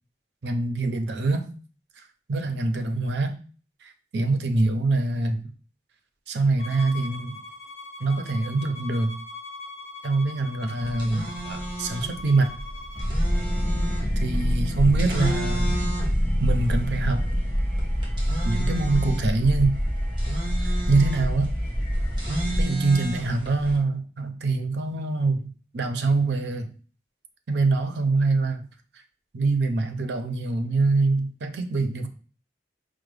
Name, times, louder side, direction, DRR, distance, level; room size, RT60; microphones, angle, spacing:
voice 1, 0.4-1.5 2.3-3.4 3.8-5.5 6.3-7.4 8.0-9.1 10.0-12.6 14.2-15.8 16.4-17.3 18.4-19.8 20.6-21.5 22.6-26.7 27.5-28.7 29.3-32.1, right 3 dB, 70° right, 6 dB, 0.5 m, -24 dB
Bowed string instrument, 6.6-13.1, left 2 dB, 40° left, 0.5 m, -41 dB
sound 1, 10.8-23.8, right 1 dB, 30° right, 1.1 m, -34 dB
sound 2, 12.9-22.6, equal, ahead, 1.0 m, -26 dB
4.8 x 2.1 x 3.2 m, 0.39 s
head